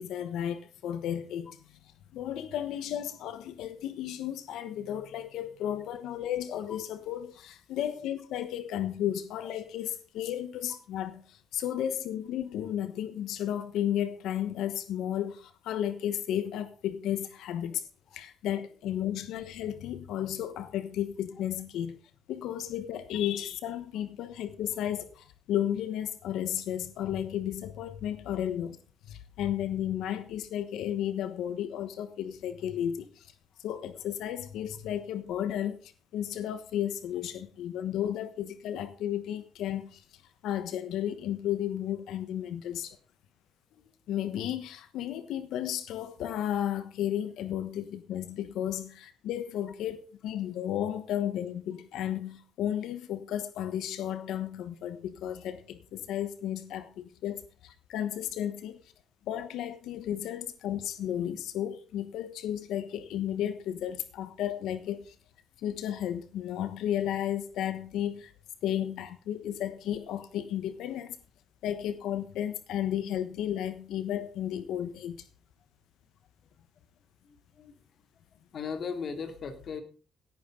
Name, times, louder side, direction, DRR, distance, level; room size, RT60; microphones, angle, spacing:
voice 1, 0.0-1.6 2.1-17.8 18.1-22.0 22.3-28.8 29.1-33.3 33.6-40.0 40.4-43.0 44.1-57.4 57.9-58.8 59.3-65.1 65.6-68.3 68.6-71.2 71.6-75.2, left 10 dB, 85° left, 1.1 m, -33 dB
voice 2, 77.2-77.8 78.5-79.8, left 5 dB, 55° left, 2.7 m, -38 dB
17.0 x 9.5 x 3.8 m
cardioid pair, 90°, 0 cm